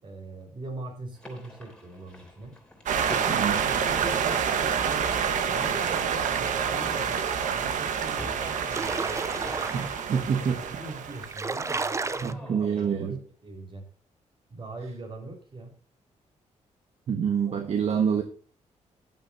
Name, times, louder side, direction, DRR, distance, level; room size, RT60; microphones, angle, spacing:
voice 1, 0.0-2.5 3.5-5.2 5.6-9.3 10.5-13.1 13.4-13.9 14.5-15.7 17.5-18.0, right 2 dB, 40° right, 3 dB, 4.8 m, -42 dB
sound 1, 1.1-12.9, left 1 dB, 10° left, 3.3 m, -47 dB
sound 2, 2.9-11.5, right 7 dB, 90° right, 1.4 m, -28 dB
voice 2, 3.3-3.6 9.7-10.7 12.2-13.2 17.1-18.2, right 7 dB, 55° right, 5 dB, 1.4 m, -27 dB
sound 3, 8.5-10.1 10.8-10.9 11.1-12.3, right 4 dB, 25° right, 0.7 m, -32 dB
14.5 x 10.5 x 2.8 m, 0.41 s
cardioid pair, 135°, 13 cm